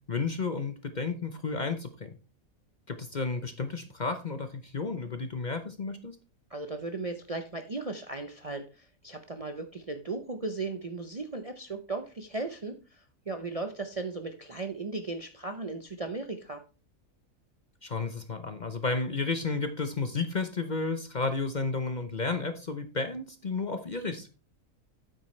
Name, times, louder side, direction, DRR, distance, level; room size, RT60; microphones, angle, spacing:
voice 1, 0.1-2.1 2.9-6.2 17.8-24.3, left 4 dB, 40° left, 8 dB, 0.8 m, -32 dB
voice 2, 6.5-16.6, right 3 dB, 35° right, 6 dB, 0.6 m, -36 dB
9.0 x 8.4 x 3.2 m, 0.33 s
omnidirectional pair, 1.4 m